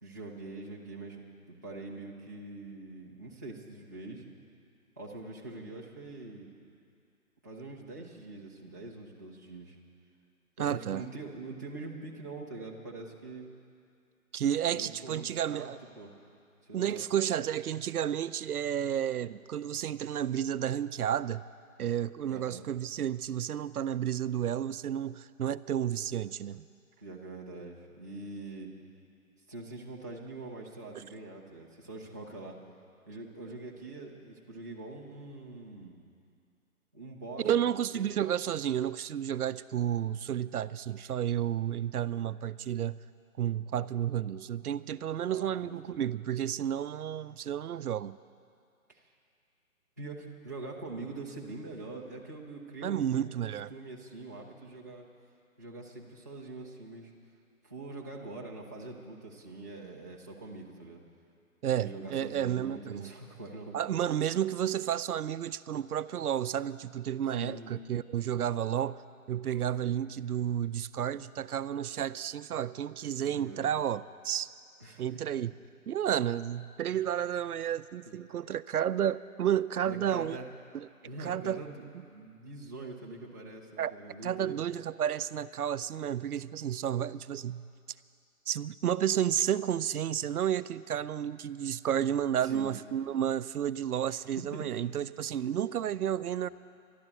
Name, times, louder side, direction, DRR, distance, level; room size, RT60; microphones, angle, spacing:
voice 1, 0.0-4.2 5.0-6.5 7.4-9.8 10.6-13.5 14.6-15.7 16.0-16.1 16.6-17.0 22.3-22.7 27.0-28.7 29.5-32.6 33.1-36.0 36.9-38.0 45.3-46.1 48.9-49.0 50.0-55.1 55.6-57.1 57.6-61.0 61.8-64.0 67.3-67.7 73.3-73.7 74.8-75.0 78.1-78.2 79.8-80.4 81.0-84.6 92.4-92.8 94.1-94.7, right 2 dB, 15° right, -5 dB, 0.5 m, -44 dB
voice 2, 10.6-11.1 14.3-15.8 16.7-21.4 21.8-26.7 37.4-43.0 43.4-48.2 52.8-53.7 61.6-63.1 63.7-69.0 69.3-74.5 75.0-75.5 75.9-80.4 80.7-80.9 81.2-81.6 83.8-83.9 84.2-87.7 88.5-96.5, right 10 dB, 85° right, 16 dB, 0.5 m, -31 dB
12.0 x 12.0 x 7.9 m, 2.3 s
hypercardioid pair, 150°, 44 cm